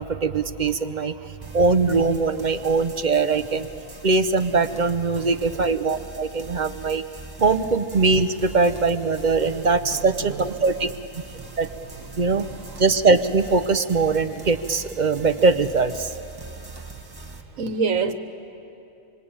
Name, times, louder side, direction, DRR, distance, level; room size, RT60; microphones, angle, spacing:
voice 1, 0.0-3.7 4.0-7.0 7.4-10.9 11.6-11.7 12.2-12.5 12.8-16.1, right 4 dB, 45° right, 11 dB, 0.7 m, -21 dB
sound 1, 1.4-17.4, right 3 dB, 15° right, 1.6 m, -41 dB
voice 2, 5.1-5.9 9.8-10.9 11.3-11.5 11.8-12.9 17.5-18.1, right 5 dB, 90° right, 9 dB, 1.6 m, -30 dB
26.0 x 25.0 x 8.8 m, 2.8 s
omnidirectional pair, 1.3 m